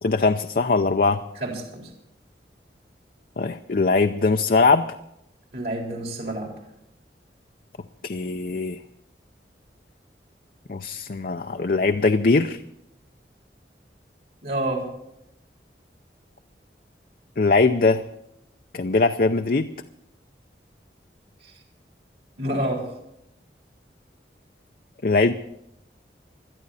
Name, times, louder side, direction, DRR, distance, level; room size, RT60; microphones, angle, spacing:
voice 1, 0.0-1.2 3.4-4.9 8.0-8.8 10.7-12.6 17.4-18.0 18.7-19.7 25.0-25.3, left 3 dB, 55° left, 7 dB, 0.5 m, -21 dB
voice 2, 1.4-1.9 5.5-6.5 14.4-14.9 21.4-21.6 22.4-22.8, right 1 dB, 60° right, 0 dB, 4.0 m, -28 dB
21.0 x 12.5 x 4.2 m, 0.81 s
head